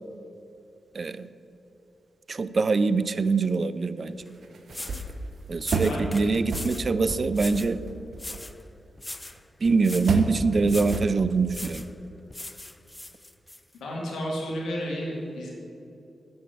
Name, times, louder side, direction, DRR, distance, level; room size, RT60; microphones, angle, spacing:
voice 1, 0.9-1.3 2.3-4.2 5.5-7.8 9.6-11.8, right 4 dB, 50° right, 15 dB, 0.4 m, -24 dB
sound 1, 4.2-6.0 6.5-6.7 7.1-8.6 9.3-9.4 9.6-9.8 10.1-10.4 10.9-11.4, right 4 dB, 70° right, 1.0 m, -30 dB
sound 2, 4.3-4.4 4.7-5.1 5.6-6.9 7.3-7.7 8.2-8.6 9.0-9.4 9.8-10.2 10.6-11.1 11.5-11.9 12.3-13.6, left 1 dB, 20° left, 0.4 m, -40 dB
voice 2, 13.7-15.5, equal, 80° left, -2 dB, 2.2 m, -32 dB
7.9 x 6.6 x 7.9 m, 2.9 s
supercardioid pair, 45°, 0 cm